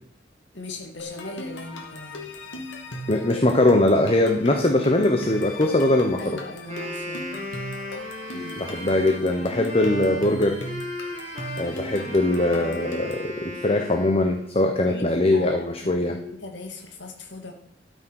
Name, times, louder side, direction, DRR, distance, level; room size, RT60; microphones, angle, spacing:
voice 1, 0.5-2.3 6.2-7.3 8.3-8.6 14.6-17.5, left 2 dB, 70° left, 3 dB, 2.5 m, -38 dB
sound 1, 1.0-13.3, left 1 dB, 85° left, 2.4 m, -38 dB
voice 2, 3.1-6.4 8.6-10.6 11.6-16.1, left 1 dB, 30° left, 4 dB, 1.1 m, -21 dB
Wind instrument woodwind instrument, 6.7-14.6, equal, 35° right, 3.1 m, -36 dB
13.0 x 6.4 x 6.5 m, 0.64 s
head